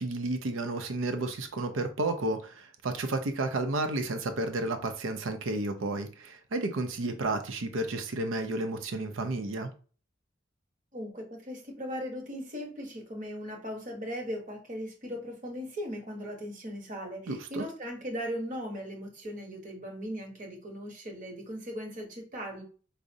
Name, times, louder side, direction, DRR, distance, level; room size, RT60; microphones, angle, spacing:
voice 1, 0.0-9.7 17.3-17.6, right 2 dB, 85° right, 0.5 m, -32 dB
voice 2, 10.9-22.6, equal, 40° right, 1.0 m, -38 dB
4.8 x 2.0 x 2.6 m
head